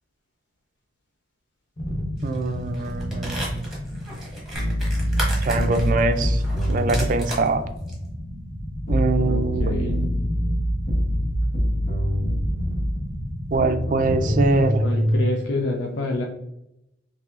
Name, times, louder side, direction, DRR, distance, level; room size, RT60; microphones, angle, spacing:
sound 1, 1.8-14.7, equal, 30° left, 0.7 m, -32 dB
sound 2, 2.2-2.5 2.7-7.5 7.9-8.0, right 1 dB, ahead, 1.1 m, -34 dB
voice 1, 2.2-3.5 5.4-6.4 6.7-7.6 8.9-10.1 13.5-14.9, right 3 dB, 45° right, 8 dB, 0.4 m, -23 dB
sound 3, 4.5-7.1 8.9-12.5 13.5-15.2, equal, 55° left, 1.2 m, -24 dB
voice 2, 9.3-9.9 14.8-16.2, left 2 dB, 85° left, 1 dB, 0.5 m, -27 dB
5.5 x 2.7 x 2.4 m, 0.85 s
head